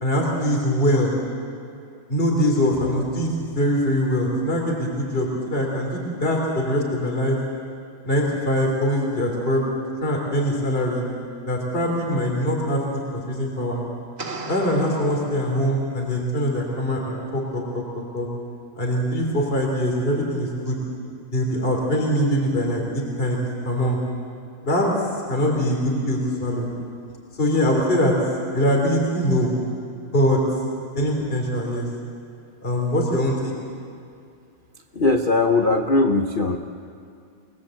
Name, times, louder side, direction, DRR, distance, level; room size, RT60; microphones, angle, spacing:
voice 1, 0.0-1.1 2.1-7.4 8.0-9.6 10.0-11.0 11.5-13.8 14.5-17.8 18.1-18.3 18.8-20.8 21.3-24.0 24.6-24.9 25.3-26.7 27.4-28.2 28.5-29.5 30.1-30.4 31.0-31.9 32.6-33.5, equal, 25° left, 0 dB, 3.7 m, -22 dB
sound 1, 14.2-16.1, right 2 dB, 30° right, 1.8 m, -36 dB
voice 2, 34.9-36.6, left 3 dB, 50° left, 3 dB, 0.6 m, -19 dB
28.0 x 19.5 x 7.9 m, 2.4 s
omnidirectional pair, 2.3 m